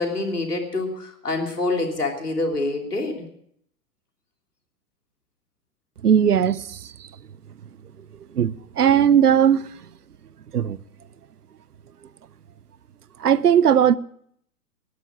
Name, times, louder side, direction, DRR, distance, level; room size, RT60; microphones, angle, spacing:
voice 1, 0.0-3.2, left 2 dB, 85° left, 3.1 m, -26 dB
voice 2, 6.0-6.6 8.4-8.5 8.8-9.6 10.5-10.8 13.2-14.0, right 9 dB, 80° right, 0.7 m, -17 dB
18.0 x 11.5 x 5.8 m
figure-of-eight pair, 105°, 45 cm